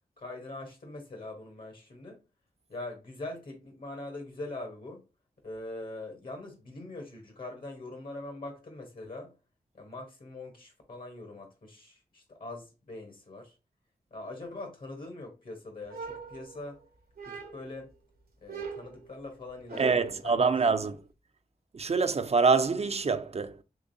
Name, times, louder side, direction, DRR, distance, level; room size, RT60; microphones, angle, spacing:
voice 1, 0.2-2.2 2.7-5.0 5.4-9.3 9.7-13.6 14.1-16.8 17.2-17.9 18.4-20.8, left 2 dB, 65° left, 1.4 m, -42 dB
sound 1, 15.9-16.8 17.2-17.8 18.5-20.2, right 5 dB, 75° right, 0.9 m, -41 dB
voice 2, 19.8-21.0 21.7-23.6, right 4 dB, 40° right, 0.4 m, -25 dB
3.7 x 3.0 x 2.6 m
cardioid pair, 45°, 16 cm